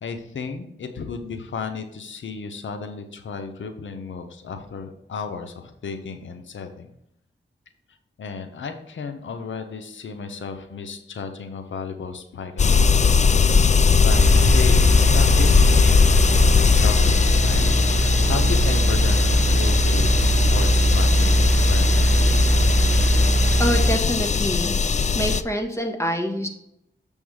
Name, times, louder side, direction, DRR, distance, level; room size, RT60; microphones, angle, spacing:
voice 1, 0.0-6.9 8.2-12.9 14.0-16.4 16.8-17.6 17.9-22.1, left 5 dB, 90° left, 7 dB, 0.7 m, -33 dB
sound 1, 12.6-25.4, left 5 dB, 40° left, 0.4 m, -19 dB
sound 2, 14.1-24.0, right 1 dB, 55° right, 0.8 m, -20 dB
voice 2, 23.6-24.7 25.1-26.5, equal, 15° left, 3 dB, 1.5 m, -25 dB
7.0 x 3.6 x 6.2 m, 0.76 s
cardioid pair, 50°, 19 cm